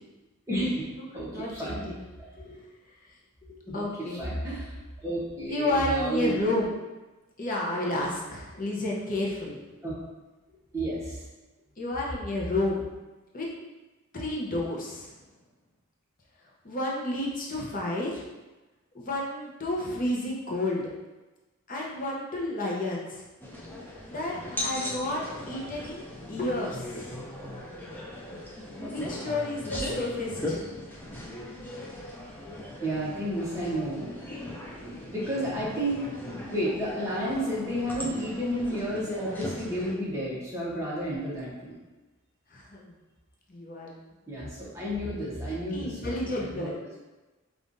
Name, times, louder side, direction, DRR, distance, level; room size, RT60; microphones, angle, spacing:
voice 1, 0.5-0.9 1.1-1.8 3.7-6.5 9.8-9.9 10.7-11.2 32.8-34.1 35.1-36.1 36.5-41.8 44.3-46.7, right 1 dB, 15° right, -7 dB, 0.9 m, -31 dB
voice 2, 1.1-2.0 2.4-2.7 3.7-4.2 5.5-6.7 7.4-9.6 11.8-12.8 13.3-13.5 14.1-15.1 16.6-18.3 18.9-20.8 21.7-23.2 24.1-27.1 28.8-30.7 42.5-42.9 43.5-44.0 45.7-46.8, left 1 dB, 40° left, -3 dB, 0.7 m, -31 dB
sound 1, 23.4-39.9, left 1 dB, 10° left, 0.4 m, -38 dB
5.3 x 2.4 x 2.6 m, 1.1 s
head